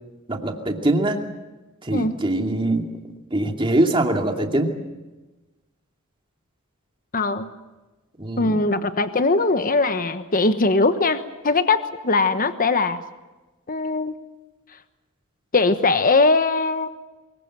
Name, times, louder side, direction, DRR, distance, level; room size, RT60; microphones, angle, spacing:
voice 1, 0.3-1.2 1.8-2.9 3.3-4.7 8.2-8.6, right 1 dB, 25° right, 3 dB, 2.5 m, -22 dB
voice 2, 7.1-7.5 8.4-13.0 13.7-14.1 15.5-16.9, left 3 dB, 40° left, 9 dB, 1.2 m, -20 dB
24.0 x 22.5 x 7.6 m, 1.1 s
head